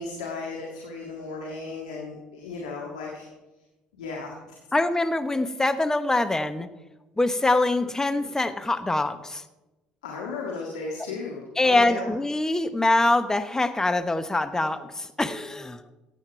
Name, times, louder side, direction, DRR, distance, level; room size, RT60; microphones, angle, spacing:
voice 1, 0.0-3.3 4.0-4.6 10.0-12.1, left 4 dB, 80° left, -1 dB, 1.8 m, -35 dB
voice 2, 4.7-6.7 7.2-9.4 11.6-15.8, left 2 dB, 15° left, 11 dB, 1.0 m, -24 dB
15.5 x 9.1 x 4.6 m, 1.1 s
hypercardioid pair, 55°, 4 cm